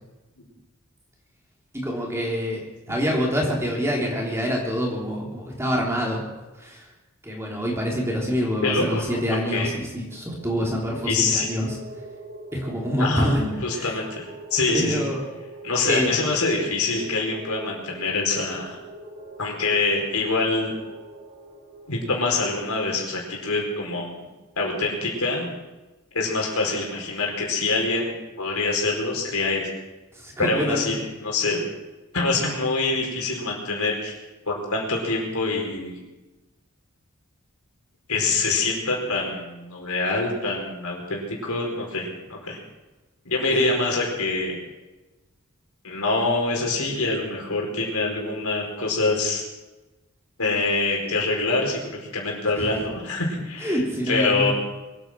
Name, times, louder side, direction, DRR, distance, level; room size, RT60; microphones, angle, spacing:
voice 1, 1.7-6.2 6.6-6.8 7.2-11.8 12.5-13.9 14.7-15.3 15.8-16.1 30.1-30.9 43.5-43.7 52.6-52.7 53.6-54.5, equal, 10° right, -2 dB, 3.4 m, -26 dB
voice 2, 8.6-9.2 9.5-9.7 11.0-11.5 13.0-13.3 13.6-15.0 15.6-18.8 19.4-20.7 21.9-24.3 24.6-25.5 26.1-29.7 30.4-31.6 32.1-34.2 34.5-36.0 38.1-42.6 43.2-44.5 45.8-49.4 50.4-53.8 54.1-54.5, left 3 dB, 80° left, 0 dB, 4.7 m, -25 dB
sound 1, 10.0-24.3, right 1 dB, 60° right, 4.6 m, -43 dB
23.5 x 9.4 x 6.2 m, 1.1 s
head